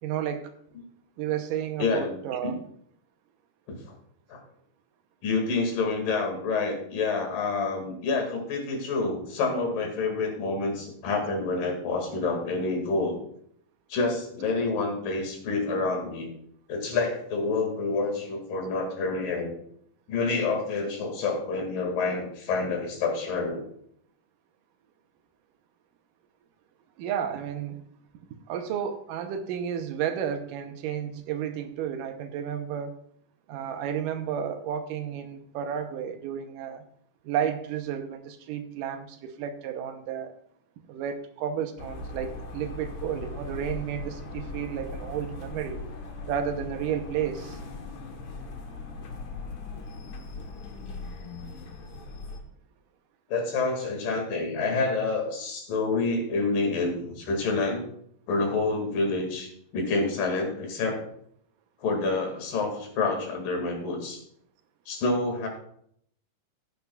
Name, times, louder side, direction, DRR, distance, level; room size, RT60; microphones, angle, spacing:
voice 1, 0.0-0.5 1.2-2.6 27.0-27.9 28.5-33.0 33.5-36.8 37.2-40.4 40.9-45.8 46.3-47.6, right 9 dB, 85° right, 8 dB, 2.4 m, -32 dB
voice 2, 1.8-2.2 2.4-2.5 3.7-3.8 4.3-4.4 5.2-13.2 13.9-16.3 16.7-19.5 20.1-23.6 53.3-57.8 58.3-61.0 61.8-64.2 64.9-65.5, left 3 dB, 90° left, 2 dB, 3.7 m, -28 dB
sound 1, 41.8-52.4, left 3 dB, 60° left, 1.3 m, -39 dB
15.0 x 9.2 x 2.3 m, 0.67 s
omnidirectional pair, 3.7 m